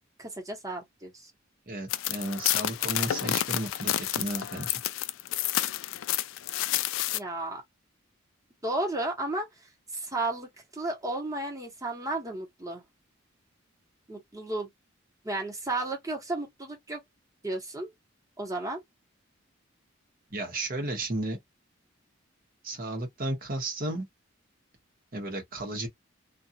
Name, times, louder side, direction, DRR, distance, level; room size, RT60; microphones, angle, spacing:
voice 1, 0.2-1.3 7.1-7.6 8.6-9.5 9.9-12.8 14.1-14.7 15.2-17.0 17.4-17.9 18.4-18.8, right 2 dB, 15° right, 1.2 m, -33 dB
voice 2, 1.7-4.7 20.3-21.4 22.6-24.0 25.1-25.9, right 1 dB, 45° right, 1.1 m, -33 dB
sound 1, 1.9-7.2, left 13 dB, 75° left, 0.3 m, -29 dB
2.5 x 2.5 x 2.7 m
head